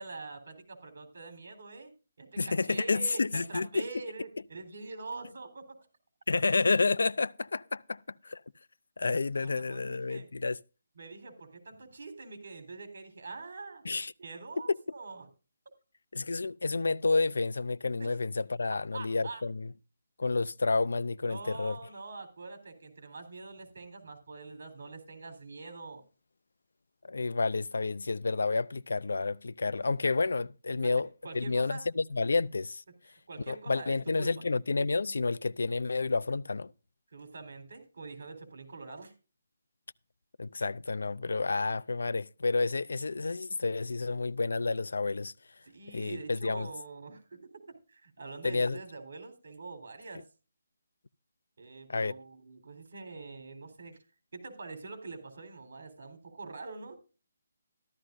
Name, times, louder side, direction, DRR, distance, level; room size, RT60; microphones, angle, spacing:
voice 1, 0.0-1.9 2.2-5.8 9.4-10.3 11.0-13.8 14.2-15.3 18.0-18.1 18.9-19.4 21.3-26.0 30.8-30.9 31.2-31.9 33.1-34.3 37.1-39.1 45.6-47.4 47.9-50.2 51.6-54.0 54.3-57.0, right 3 dB, 65° right, 3.8 m, -44 dB
voice 2, 2.4-3.8 6.3-8.4 9.0-10.6 13.8-14.1 14.7-14.8 16.1-19.7 20.2-21.8 27.0-31.1 31.3-32.8 33.5-36.7 40.4-45.3 45.9-46.7 48.4-48.8 51.9-52.1, left 3 dB, 90° left, 0.5 m, -30 dB
14.0 x 13.0 x 2.6 m
hypercardioid pair, 170°, 0 cm